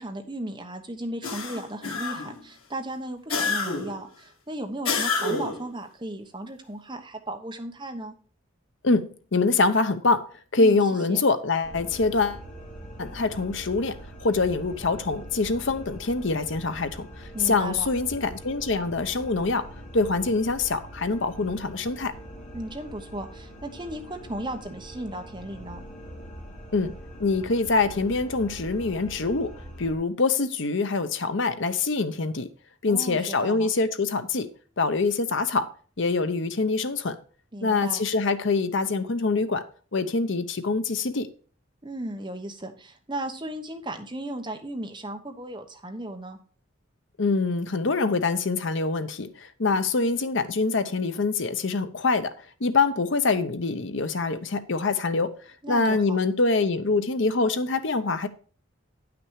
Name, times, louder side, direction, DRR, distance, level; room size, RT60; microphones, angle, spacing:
voice 1, 0.0-8.2 10.6-10.8 11.1-11.2 17.3-17.9 22.5-25.8 32.9-33.7 37.5-38.0 41.8-46.4 55.6-56.2, right 1 dB, 20° right, 1.0 m, -35 dB
sound 1, 1.2-2.4 3.3-4.0 4.9-5.7, left 4 dB, 90° left, 2.0 m, -28 dB
voice 2, 8.8-12.4 13.0-17.1 17.5-19.7 19.9-22.1 26.7-26.9 27.2-29.5 29.8-32.5 32.8-34.5 34.8-35.7 36.0-37.2 37.6-39.6 39.9-41.3 47.2-52.3 52.6-55.4 55.7-58.3, left 3 dB, 65° left, 0.8 m, -25 dB
sound 2, 11.6-29.9, equal, 35° left, 2.7 m, -43 dB
9.7 x 6.1 x 4.7 m
head